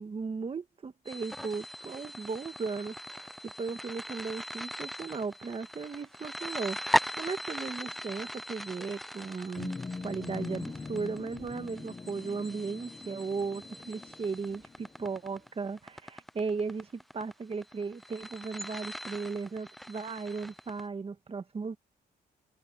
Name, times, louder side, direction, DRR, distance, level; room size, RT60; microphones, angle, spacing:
voice 1, 0.0-9.7 10.0-21.8, right 4 dB, 30° right, 1.6 m, -36 dB
sound 1, 1.0-20.8, equal, ahead, 0.5 m, -39 dB
sound 2, 9.6-15.3, left 4 dB, 20° left, 0.8 m, -42 dB
wide cardioid pair, 155°, 18 cm